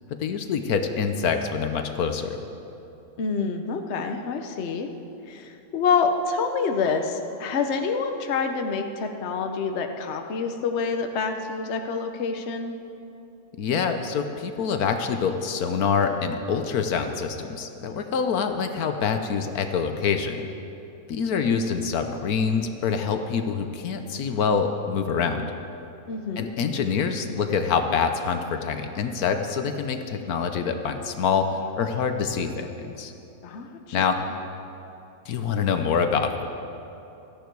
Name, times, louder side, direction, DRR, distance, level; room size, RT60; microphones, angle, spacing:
voice 1, 0.2-2.4 13.6-20.5 21.1-25.5 26.4-33.1 33.9-34.2 35.3-36.5, left 6 dB, 75° left, 6 dB, 1.3 m, -25 dB
voice 2, 3.2-4.9 5.3-12.7 26.1-26.5 33.4-34.0, left 5 dB, 50° left, 5 dB, 1.1 m, -27 dB
17.0 x 13.5 x 4.6 m, 2.9 s
omnidirectional pair, 1.6 m